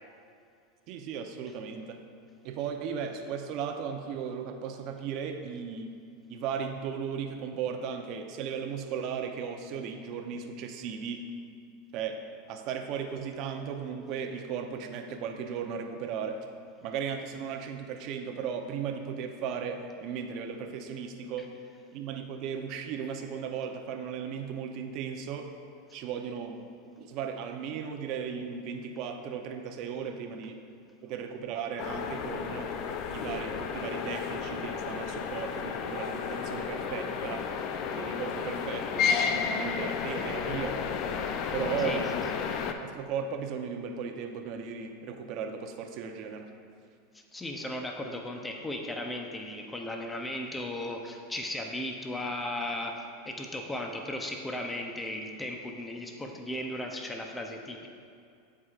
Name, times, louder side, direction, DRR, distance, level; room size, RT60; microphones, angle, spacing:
voice 1, 0.9-2.0 2.4-5.9 6.3-11.3 11.9-12.2 12.5-16.4 16.8-21.5 21.9-25.5 25.9-26.6 27.0-30.6 31.0-32.7 33.1-37.4 37.9-40.8 41.5-42.1 42.8-46.5, right 7 dB, 55° right, 5 dB, 0.8 m, -36 dB
sound 1, 31.8-42.7, left 6 dB, 50° left, 0.5 m, -32 dB
voice 2, 47.1-57.9, left 1 dB, 10° left, 2 dB, 0.7 m, -36 dB
14.0 x 4.8 x 2.5 m, 2.4 s
hypercardioid pair, 110°, 0 cm